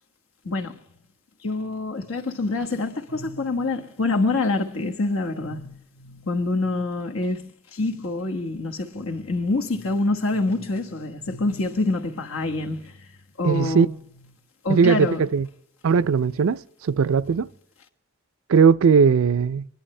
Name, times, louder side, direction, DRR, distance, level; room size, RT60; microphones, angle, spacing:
voice 1, 1.4-7.4 7.7-12.9 13.4-13.9 14.6-15.2, left 2 dB, 85° left, 1.4 m, -26 dB
voice 2, 13.4-13.9 14.7-15.5 15.8-17.5 18.5-19.7, right 6 dB, 75° right, 0.4 m, -19 dB
22.5 x 11.5 x 3.2 m
head